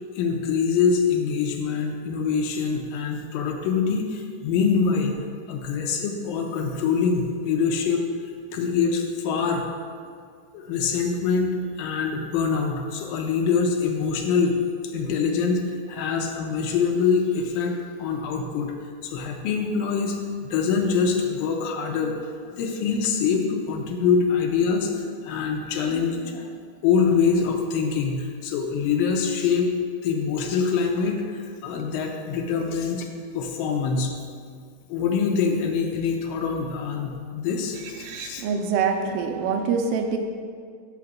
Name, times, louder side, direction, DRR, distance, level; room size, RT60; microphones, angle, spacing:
voice 1, 0.2-5.2 5.5-8.0 8.5-9.7 10.5-18.8 19.0-22.2 22.4-26.5 26.8-29.7 30.0-33.1 33.3-34.1 34.9-38.5, left 5 dB, 80° left, 3 dB, 2.3 m, -24 dB
voice 2, 37.8-40.2, right 5 dB, 80° right, 4 dB, 2.1 m, -25 dB
6.2 x 5.7 x 5.9 m, 2.1 s
omnidirectional pair, 4.2 m